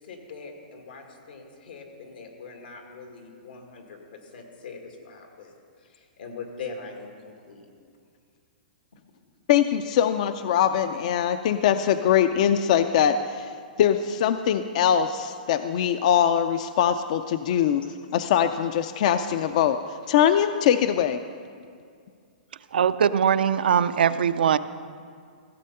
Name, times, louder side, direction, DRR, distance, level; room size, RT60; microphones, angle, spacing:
voice 1, 0.0-7.6 17.8-17.9, left 4 dB, 85° left, 2 dB, 2.1 m, -42 dB
voice 2, 9.5-13.5 13.8-17.8 18.1-19.8 20.1-21.2, left 9 dB, 50° left, 10 dB, 0.4 m, -22 dB
voice 3, 22.7-24.6, right 8 dB, 85° right, 13 dB, 0.4 m, -21 dB
15.5 x 7.5 x 5.5 m, 2.2 s
hypercardioid pair, 155°, 5 cm